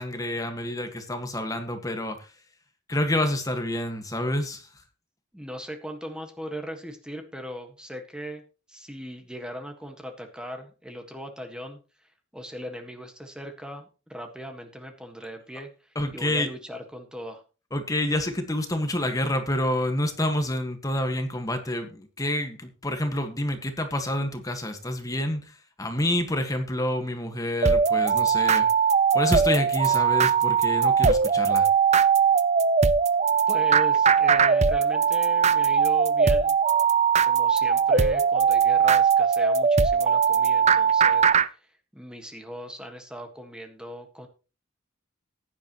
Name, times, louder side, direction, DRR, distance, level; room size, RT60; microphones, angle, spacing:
voice 1, 0.0-2.3 2.9-4.7 15.9-16.5 17.7-28.7 29.1-31.7, left 1 dB, 20° left, 6 dB, 1.6 m, -28 dB
voice 2, 5.3-8.4 8.7-11.8 12.3-15.7 16.1-17.4 33.5-36.5 37.2-44.3, equal, 5° right, 4 dB, 1.6 m, -39 dB
sound 1, 27.6-41.5, right 6 dB, 35° right, 0.6 m, -20 dB
15.5 x 10.5 x 3.1 m, 0.33 s
head